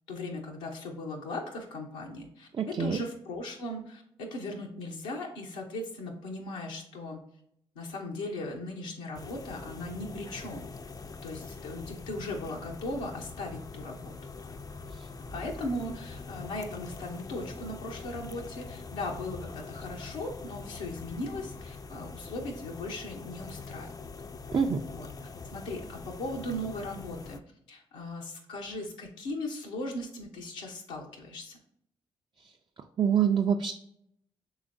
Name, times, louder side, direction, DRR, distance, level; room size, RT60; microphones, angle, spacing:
voice 1, 0.1-2.5 2.8-7.2 7.7-10.7 11.2-14.1 15.3-23.9 24.8-25.1 25.5-27.4 27.7-31.6, left 1 dB, 90° left, -2 dB, 0.7 m, -38 dB
voice 2, 2.5-3.0 14.9-15.1 24.5-24.8 32.4-32.5 33.0-33.7, right 7 dB, 40° right, 3 dB, 0.4 m, -26 dB
sound 1, 9.1-27.4, left 4 dB, 30° left, 0.4 m, -43 dB
4.8 x 3.4 x 2.6 m, 0.73 s
hypercardioid pair, 45°, 12 cm